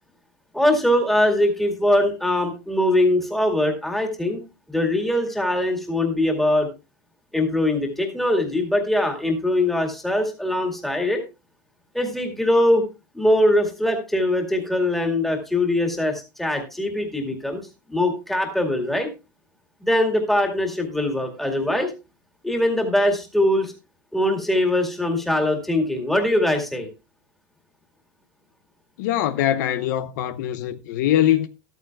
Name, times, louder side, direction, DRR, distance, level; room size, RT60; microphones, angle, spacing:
voice 1, 0.5-4.4 4.7-6.7 7.3-11.2 11.9-12.8 13.1-17.6 17.9-19.1 19.8-21.9 22.4-23.7 24.1-26.9, left 1 dB, ahead, 2.2 m, -22 dB
voice 2, 29.0-31.5, left 12 dB, 60° left, 0.7 m, -22 dB
13.5 x 13.5 x 2.3 m
supercardioid pair, 175°, 11 cm